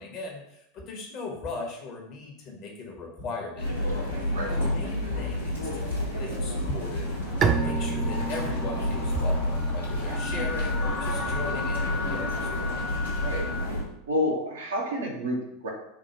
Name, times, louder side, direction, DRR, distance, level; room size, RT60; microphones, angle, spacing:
voice 1, 0.0-12.8, left 3 dB, 45° left, 1 dB, 1.0 m, -38 dB
sound 1, 3.6-13.8, left 1 dB, 90° left, 1.1 m, -29 dB
sound 2, 7.1-13.7, left 4 dB, 25° left, 0.5 m, -37 dB
Bowed string instrument, 7.4-13.0, right 6 dB, 35° right, 0.4 m, -33 dB
voice 2, 14.1-15.7, left 1 dB, 75° right, -1 dB, 0.9 m, -29 dB
3.5 x 2.4 x 4.2 m, 0.80 s
figure-of-eight pair, 85°, 0 cm